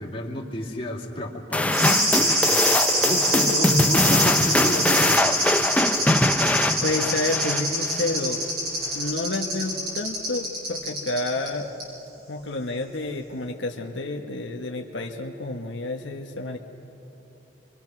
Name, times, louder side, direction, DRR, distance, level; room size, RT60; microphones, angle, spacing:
voice 1, 0.0-5.5, left 1 dB, 30° left, -3 dB, 2.5 m, -32 dB
sound 1, 1.5-8.1, left 1 dB, 10° left, 0.6 m, -22 dB
sound 2, 1.7-11.5 11.8-11.9, equal, 55° right, 6.9 m, -25 dB
voice 2, 6.8-8.5 8.9-11.7 12.3-16.6, left 2 dB, 80° left, 2 dB, 1.3 m, -29 dB
27.0 x 23.5 x 6.1 m, 3.0 s
head